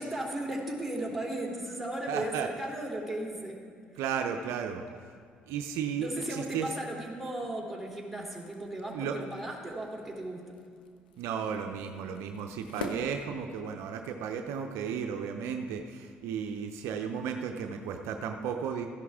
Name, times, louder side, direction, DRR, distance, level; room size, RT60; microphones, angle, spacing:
voice 1, 0.0-3.6 3.9-4.0 6.0-10.5, right 1 dB, ahead, -1 dB, 3.0 m, -36 dB
voice 2, 2.1-2.5 4.0-4.8 5.5-6.7 8.9-9.2 11.2-18.9, right 7 dB, 70° right, 5 dB, 0.6 m, -34 dB
sound 1, 8.0-14.0, left 4 dB, 90° left, 0.6 m, -46 dB
14.0 x 11.0 x 3.5 m, 2.2 s
hypercardioid pair, 55°, 5 cm